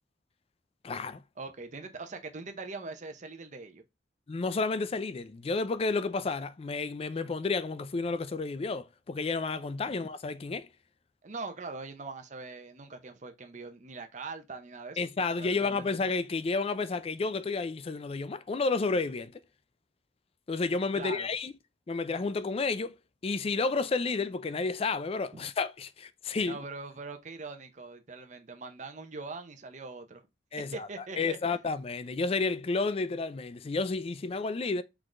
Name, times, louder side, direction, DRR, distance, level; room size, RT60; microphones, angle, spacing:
voice 1, 0.8-1.2 4.3-10.7 15.0-19.4 20.5-21.5 21.9-22.9 23.2-26.6 30.5-30.9 31.2-34.8, left 3 dB, 35° left, 0.4 m, -31 dB
voice 2, 1.4-3.8 11.2-15.0 15.4-15.7 20.9-21.3 25.3-25.4 26.5-30.2 30.7-31.6, right 3 dB, 40° right, 0.8 m, -42 dB
4.6 x 4.1 x 2.5 m
head